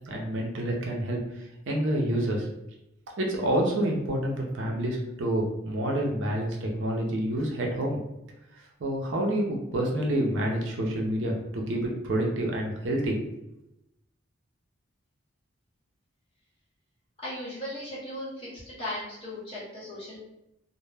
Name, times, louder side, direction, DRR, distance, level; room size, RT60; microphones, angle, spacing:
voice 1, 0.1-1.2 1.7-2.5 3.2-8.0 8.8-13.2, right 1 dB, 65° right, -1 dB, 0.5 m, -28 dB
voice 2, 17.2-20.2, left 1 dB, 25° left, -8 dB, 1.0 m, -37 dB
2.1 x 2.0 x 3.2 m, 0.88 s
head